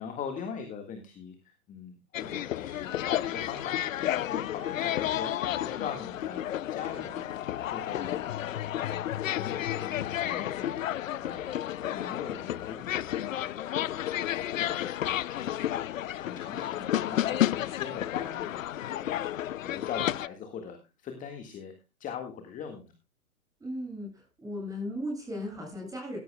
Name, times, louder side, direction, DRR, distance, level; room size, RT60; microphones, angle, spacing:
voice 1, 0.0-7.3 7.7-11.5 11.9-12.9 13.3-13.6 14.5-14.9 15.3-18.6 18.9-21.7 22.0-22.9, left 7 dB, 15° left, 5 dB, 1.7 m, -41 dB
sound 1, 2.1-20.3, left 12 dB, 60° left, 0.6 m, -31 dB
voice 2, 23.6-26.2, equal, 5° right, 1 dB, 7.3 m, -36 dB
15.5 x 14.0 x 2.2 m, 0.27 s
hypercardioid pair, 125°, 45 cm